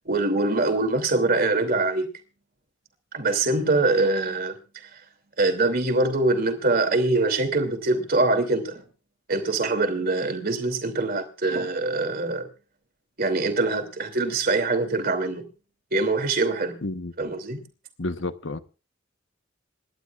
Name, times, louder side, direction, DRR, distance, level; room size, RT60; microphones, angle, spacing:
voice 1, 0.0-2.1 3.1-4.9 5.4-8.8 9.3-12.5 13.2-15.5 15.9-16.8 17.2-17.6, right 2 dB, 50° right, 2.9 m, -24 dB
voice 2, 16.8-17.1 18.0-18.6, left 2 dB, 70° left, 1.1 m, -30 dB
27.5 x 12.0 x 2.5 m
head